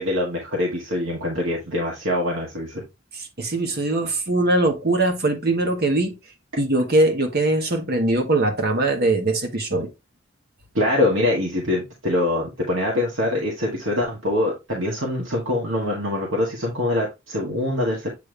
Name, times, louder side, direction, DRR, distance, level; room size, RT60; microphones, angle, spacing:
voice 1, 0.0-2.8 10.7-18.1, left 1 dB, 70° right, 1.8 m, -24 dB
voice 2, 3.1-6.2 6.6-9.9, right 2 dB, 50° right, 1.5 m, -21 dB
8.5 x 3.4 x 3.4 m
head